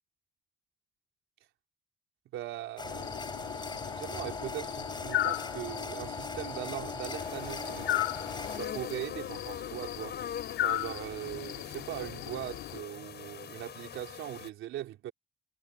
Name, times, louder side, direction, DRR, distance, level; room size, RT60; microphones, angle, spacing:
voice 1, 2.3-10.2 10.6-15.1, right 13 dB, 85° right, 3.8 m, -40 dB
sound 1, 2.8-8.6, left 3 dB, 20° left, 4.5 m, -39 dB
sound 2, 2.9-12.8, left 15 dB, 90° left, 4.4 m, -37 dB
sound 3, 7.2-14.5, left 8 dB, 55° left, 5.5 m, -43 dB
cardioid pair, 90°, 20 cm